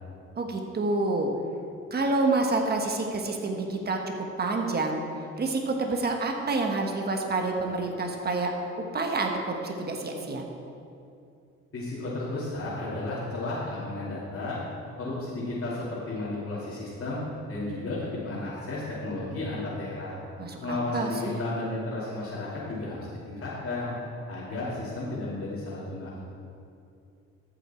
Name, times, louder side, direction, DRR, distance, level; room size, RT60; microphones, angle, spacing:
voice 1, 0.4-1.3 1.9-5.0 5.4-8.5 8.9-10.4 20.4-21.4, right 3 dB, 30° right, 2 dB, 1.3 m, -28 dB
voice 2, 11.7-14.6 15.0-17.2 17.5-20.2 20.6-23.9 24.3-26.2, left 2 dB, 45° left, -9 dB, 2.8 m, -33 dB
14.0 x 7.1 x 4.4 m, 2.5 s
cardioid pair, 90°, 30 cm